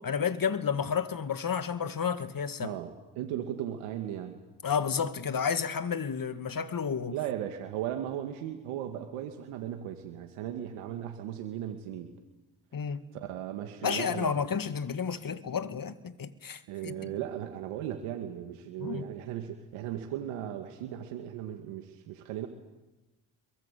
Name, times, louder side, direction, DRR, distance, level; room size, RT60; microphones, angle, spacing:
voice 1, 0.0-2.8 4.6-7.2 12.7-13.0 13.8-16.9 18.8-19.0, left 6 dB, 45° left, 2.2 m, -31 dB
voice 2, 2.6-4.4 7.1-12.1 13.1-14.3 16.7-22.5, right 11 dB, 90° right, 2.2 m, -37 dB
25.0 x 23.0 x 8.4 m
supercardioid pair, 60°, 48 cm